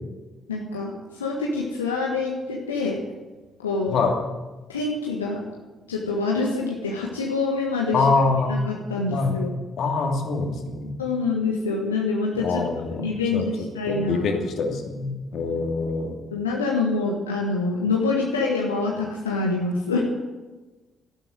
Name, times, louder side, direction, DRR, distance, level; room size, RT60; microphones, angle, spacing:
voice 1, 0.5-3.0 3.6-4.0 4.7-5.6 5.9-8.1 8.5-9.5 11.0-12.6 12.9-14.3 16.3-20.0, left 3 dB, 85° left, -2 dB, 1.5 m, -26 dB
voice 2, 7.9-8.5 9.1-9.4 9.8-10.9 12.4-13.4 13.9-16.1, left 4 dB, 60° left, 3 dB, 2.6 m, -25 dB
13.0 x 11.5 x 9.0 m, 1.2 s
figure-of-eight pair, 40°, 0 cm